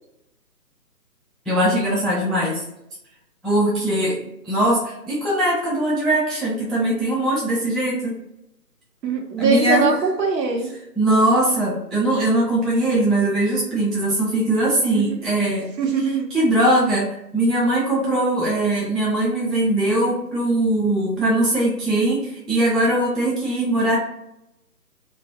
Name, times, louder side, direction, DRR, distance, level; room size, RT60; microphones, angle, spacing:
voice 1, 1.5-2.6 3.4-8.2 9.4-9.9 11.0-15.7 16.3-24.0, right 1 dB, ahead, -6 dB, 0.3 m, -20 dB
voice 2, 9.0-10.7 14.9-15.2 15.8-16.3, right 5 dB, 90° right, 1 dB, 0.9 m, -22 dB
2.3 x 2.0 x 2.7 m, 0.84 s
figure-of-eight pair, 155°, 49 cm